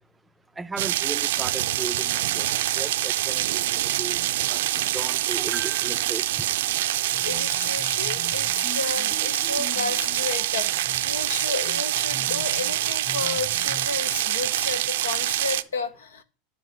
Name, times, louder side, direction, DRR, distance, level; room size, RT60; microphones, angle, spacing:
voice 1, 0.6-2.5 2.8-3.6 4.0-4.2 4.5-6.5, right 3 dB, 15° right, 0.4 m, -36 dB
sound 1, 0.8-15.6, right 14 dB, 70° right, 0.5 m, -25 dB
sound 2, 7.1-14.0, left 6 dB, 35° left, 2.6 m, -43 dB
voice 2, 7.2-16.2, left 4 dB, 80° left, 1.0 m, -32 dB
10.5 x 3.7 x 7.0 m
hypercardioid pair, 85°, 0 cm